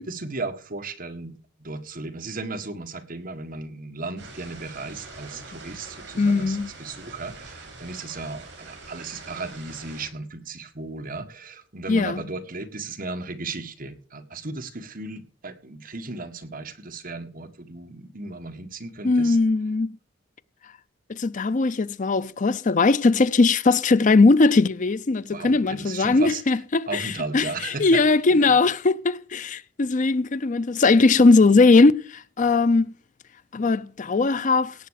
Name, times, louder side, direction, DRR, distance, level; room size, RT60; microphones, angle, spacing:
voice 1, 0.0-1.3 1.6-19.4 25.3-26.4 26.9-28.0 28.3-28.5, right 3 dB, 50° right, 1.7 m, -35 dB
sound 1, 4.2-10.1, right 3 dB, 65° right, 6.8 m, -43 dB
voice 2, 6.2-6.7 11.9-12.2 19.0-20.0 21.1-32.9 33.5-34.7, left 3 dB, 40° left, 0.5 m, -19 dB
17.5 x 7.7 x 6.5 m
head